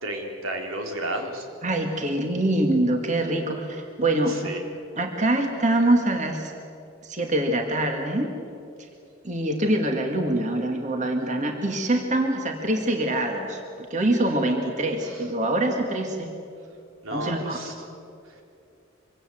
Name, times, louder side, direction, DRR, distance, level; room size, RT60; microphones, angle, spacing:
voice 1, 0.0-1.5 4.3-4.6 14.8-15.3 17.0-17.7 18.2-18.4, right 1 dB, 80° right, 2 dB, 3.7 m, -33 dB
voice 2, 1.6-4.5 5.0-6.5 7.0-8.3 9.2-16.3 17.1-17.6, right 1 dB, 35° right, 3 dB, 2.2 m, -24 dB
25.5 x 24.5 x 7.9 m, 2.6 s
head